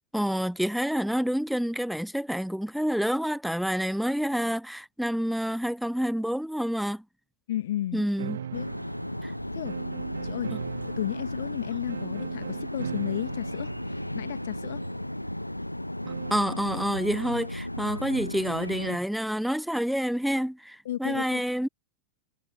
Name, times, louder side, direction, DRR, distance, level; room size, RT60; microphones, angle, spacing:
voice 1, 0.1-7.0 7.9-8.4 9.2-9.3 10.5-10.6 16.3-21.7, equal, ahead, 0.5 m, -28 dB
voice 2, 7.5-8.0 8.5-8.7 9.5-9.7 10.2-10.5 11.0-14.8 20.8-21.4, left 13 dB, 60° left, 1.5 m, -33 dB
sound 1, 8.2-16.6, right 8 dB, 65° right, 1.0 m, -40 dB
sound 2, 8.5-19.0, left 1 dB, 85° left, 1.2 m, -35 dB
figure-of-eight pair, 90°, 0 cm